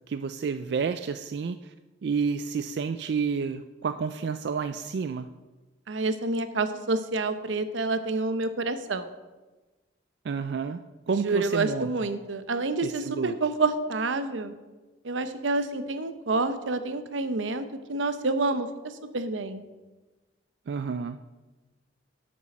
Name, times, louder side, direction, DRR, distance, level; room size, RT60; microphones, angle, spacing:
voice 1, 0.1-1.7 2.0-5.3 10.2-11.9 12.8-13.4 20.7-21.2, right 5 dB, 65° right, 10 dB, 0.3 m, -30 dB
voice 2, 5.9-9.1 11.1-14.5 15.0-18.7 19.1-19.6, right 3 dB, 90° right, 10 dB, 0.8 m, -28 dB
8.2 x 7.4 x 6.1 m, 1.2 s
head